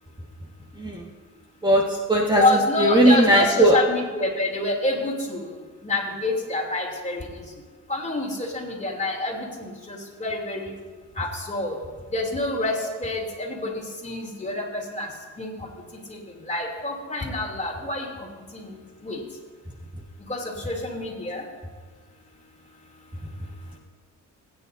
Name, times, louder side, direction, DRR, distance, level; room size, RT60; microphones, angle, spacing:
voice 1, 1.6-3.8, right 1 dB, 15° right, -2 dB, 1.7 m, -18 dB
voice 2, 2.4-5.4 5.8-7.2 7.9-10.7 11.2-11.7 12.1-15.1 15.4-15.5 16.1-16.2 16.5-18.1 18.5-18.7 19.0-19.2 20.3-21.4, left 2 dB, 25° left, -1 dB, 3.1 m, -27 dB
21.0 x 9.5 x 2.7 m, 1.4 s
cardioid pair, 90°, 30 cm